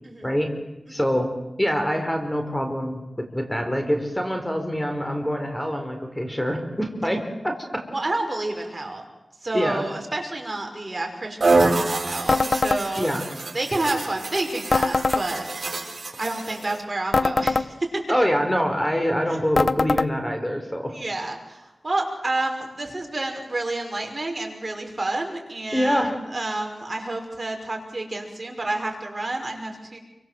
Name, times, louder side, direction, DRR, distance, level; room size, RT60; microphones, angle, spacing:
voice 1, 0.9-1.3 1.6-7.9 9.5-9.9 13.0-13.3 18.1-20.9 25.7-26.2, equal, 10° left, 5 dB, 4.3 m, -25 dB
voice 2, 7.9-9.0 9.4-13.1 13.5-15.5 16.2-18.0 20.9-30.0, right 2 dB, 35° right, 2 dB, 5.9 m, -29 dB
sound 1, 11.4-16.8, right 3 dB, 55° right, 4.9 m, -26 dB
sound 2, 12.3-12.8 14.7-15.2 17.1-17.7 19.6-20.1, left 3 dB, 55° left, 0.9 m, -21 dB
29.0 x 25.0 x 7.8 m, 0.98 s
wide cardioid pair, 80°, 0 cm